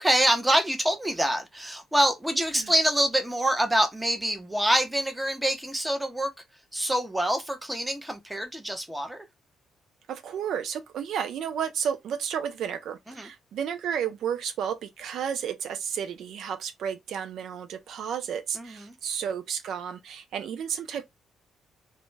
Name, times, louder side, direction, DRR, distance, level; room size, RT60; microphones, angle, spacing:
voice 1, 0.0-6.3 6.7-9.2 13.1-13.3 18.6-18.9, right 1 dB, 10° right, 0.7 m, -26 dB
voice 2, 10.1-21.0, right 8 dB, 75° right, 0.3 m, -32 dB
2.2 x 2.1 x 3.2 m
cardioid pair, 90°, 0 cm